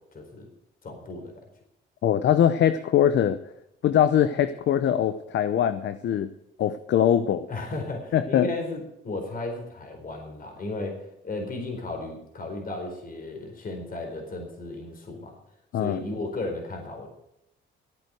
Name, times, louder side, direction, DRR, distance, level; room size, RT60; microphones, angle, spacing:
voice 1, 0.1-0.5 0.8-1.4 7.5-15.4 15.7-17.1, left 2 dB, 45° left, 3 dB, 4.4 m, -35 dB
voice 2, 2.0-3.4 3.8-6.3 6.6-7.5 8.1-8.5 15.7-16.0, left 10 dB, 65° left, 12 dB, 0.8 m, -22 dB
14.0 x 9.2 x 7.8 m, 0.80 s
cardioid pair, 90°, 20 cm